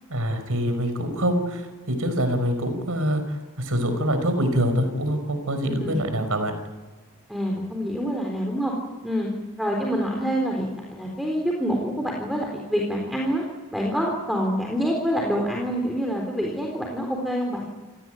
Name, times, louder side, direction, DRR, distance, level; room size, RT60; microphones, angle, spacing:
voice 1, 0.1-6.5, equal, 70° right, 9 dB, 5.2 m, -25 dB
voice 2, 5.6-6.0 7.3-8.7 9.0-9.3 9.6-13.4 13.7-17.7, equal, ahead, 0 dB, 3.9 m, -26 dB
28.5 x 17.0 x 9.2 m, 1.3 s
head